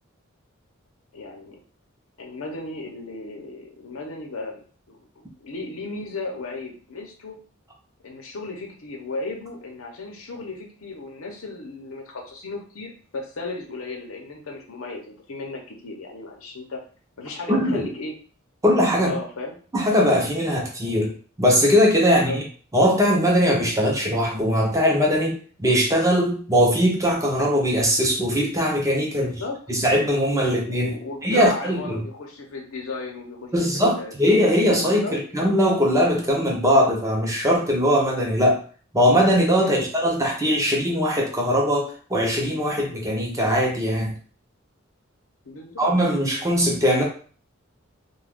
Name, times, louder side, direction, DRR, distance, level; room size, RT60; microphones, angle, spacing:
voice 1, 1.1-1.6 2.2-4.6 4.9-5.0 5.4-7.4 8.0-16.8 17.2-18.1 19.0-19.6 22.0-22.4 29.1-29.8 30.4-34.1 34.8-35.2 39.6-39.9 45.4-45.8, left 3 dB, 80° left, 1 dB, 0.7 m, -35 dB
voice 2, 17.5-17.9 18.6-19.2 19.7-21.1 21.4-22.4 22.7-29.3 29.7-30.9 31.2-32.0 33.5-38.6 38.9-44.1 45.8-47.0, equal, 15° right, -1 dB, 0.6 m, -20 dB
2.4 x 2.2 x 3.4 m, 0.41 s
head